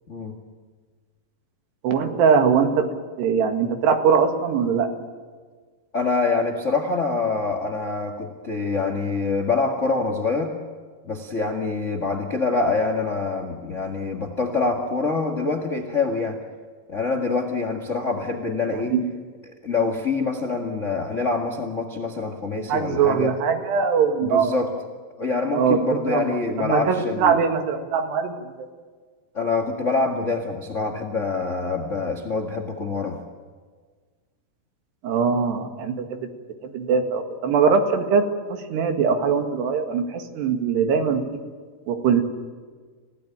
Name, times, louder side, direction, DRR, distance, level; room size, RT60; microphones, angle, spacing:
voice 1, 1.8-4.9 18.7-19.0 22.7-24.6 25.5-25.8 26.1-26.3 26.6-28.5 35.0-36.2 36.6-38.2 38.5-41.2 41.9-42.2, right 6 dB, 80° right, 5 dB, 4.1 m, -21 dB
voice 2, 5.9-10.5 11.1-16.4 16.9-19.0 19.6-23.3 24.2-24.7 25.2-27.4 29.3-33.2, left 3 dB, 45° left, 5 dB, 1.0 m, -25 dB
30.0 x 17.5 x 9.0 m, 1.5 s
omnidirectional pair, 4.7 m